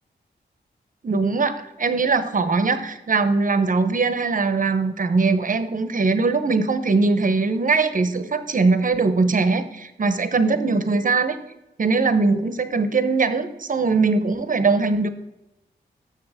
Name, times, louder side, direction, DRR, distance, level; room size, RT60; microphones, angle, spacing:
voice 1, 1.0-11.4 11.8-15.1, right 4 dB, 45° right, 11 dB, 0.9 m, -21 dB
6.8 x 6.3 x 4.9 m, 0.92 s
cardioid pair, 45°, 19 cm